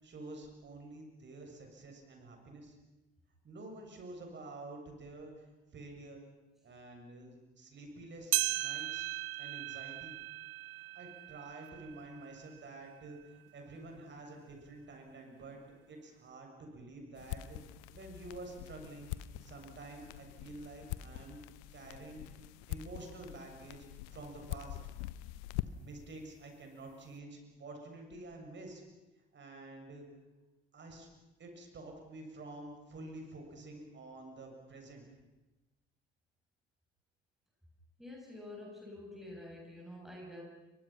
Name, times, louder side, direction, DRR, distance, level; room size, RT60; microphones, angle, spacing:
voice 1, 0.0-2.8 3.4-6.2 6.6-9.1 9.4-10.1 10.8-15.6 15.9-17.6 17.9-19.1 19.4-21.4 21.7-22.2 22.7-24.8 25.8-28.8 29.3-30.0 30.7-31.1 31.4-35.1, right 2 dB, 35° right, 3 dB, 7.0 m, -49 dB
sound 1, 8.3-13.0 13.5-13.6 14.4-14.5 15.4-15.5, right 19 dB, 65° right, 0.8 m, -37 dB
sound 2, 17.2-26.0, left 15 dB, 60° left, 1.0 m, -44 dB
voice 2, 38.0-40.4, left 1 dB, ahead, -2 dB, 7.8 m, -48 dB
29.5 x 24.0 x 5.9 m, 1.1 s
figure-of-eight pair, 55°, 30 cm